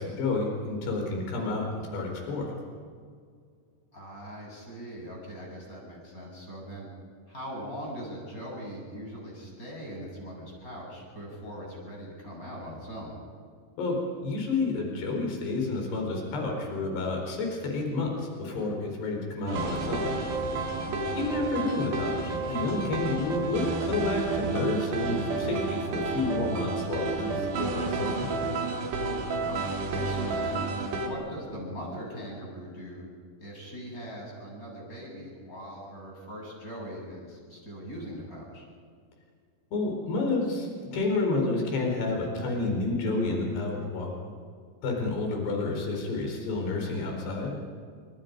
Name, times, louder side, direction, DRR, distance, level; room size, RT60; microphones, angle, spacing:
voice 1, 0.0-1.7 1.9-2.6 13.8-20.1 21.2-28.3 39.7-44.1 44.8-47.5, left 3 dB, 75° left, 1 dB, 6.5 m, -30 dB
voice 2, 3.9-6.9 7.3-13.2 20.9-21.2 29.5-33.1 33.4-38.6, equal, 20° left, -2 dB, 8.1 m, -41 dB
sound 1, 19.5-31.1, right 3 dB, 75° right, 5.0 m, -31 dB
29.5 x 26.0 x 5.4 m, 2.1 s
omnidirectional pair, 4.8 m